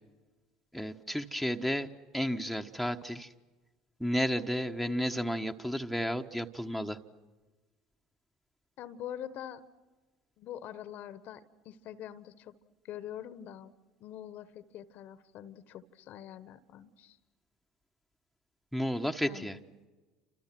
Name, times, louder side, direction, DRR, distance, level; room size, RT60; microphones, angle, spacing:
voice 1, 0.7-1.9 2.1-3.3 4.0-7.0 18.7-19.6, equal, ahead, 6 dB, 1.4 m, -32 dB
voice 2, 8.8-9.6 10.4-12.5 12.8-13.7 14.0-17.2 19.2-19.7, left 10 dB, 55° left, 14 dB, 1.3 m, -44 dB
29.5 x 27.0 x 6.1 m, 1.3 s
hypercardioid pair, 70°, 4 cm